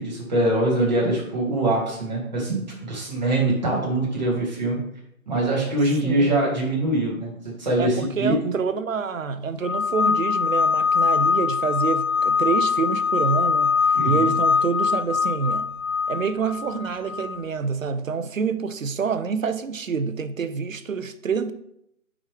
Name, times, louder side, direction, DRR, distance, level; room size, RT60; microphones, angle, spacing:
voice 1, 0.0-4.8 5.3-8.5 13.9-14.3, right 1 dB, 30° right, 1.9 m, -23 dB
voice 2, 6.0-6.4 7.8-15.7 16.1-21.5, right 5 dB, 65° right, 0.7 m, -27 dB
sound 1, 9.6-17.4, left 5 dB, 70° left, 0.6 m, -22 dB
7.1 x 5.1 x 3.4 m
figure-of-eight pair, 170°, 43 cm